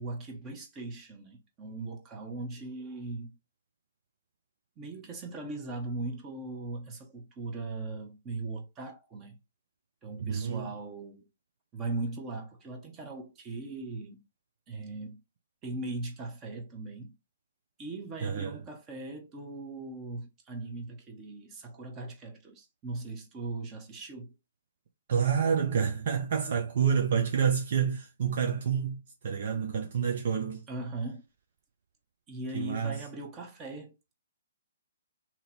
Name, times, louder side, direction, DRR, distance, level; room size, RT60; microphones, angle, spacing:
voice 1, 0.0-3.4 4.8-9.4 10.0-11.2 11.7-14.2 14.7-15.2 15.6-17.1 17.8-24.3 30.7-31.2 32.3-33.9, right 2 dB, 25° right, 1.0 m, -39 dB
voice 2, 10.2-10.7 18.2-18.5 25.1-30.6 32.5-33.0, right 7 dB, 55° right, 0.7 m, -28 dB
2.9 x 2.8 x 4.3 m
figure-of-eight pair, 130°, 0 cm